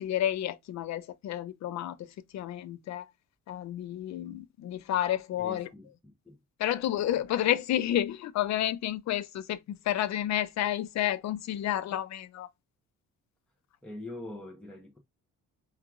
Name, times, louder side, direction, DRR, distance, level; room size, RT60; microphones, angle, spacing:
voice 1, 0.0-3.0 3.5-5.7 6.6-12.5, left 12 dB, 55° left, 0.4 m, -30 dB
voice 2, 5.4-5.9 6.2-6.4 6.9-7.2 13.8-15.0, left 2 dB, 5° left, 0.6 m, -43 dB
4.4 x 2.4 x 2.3 m
cardioid pair, 125°, 34 cm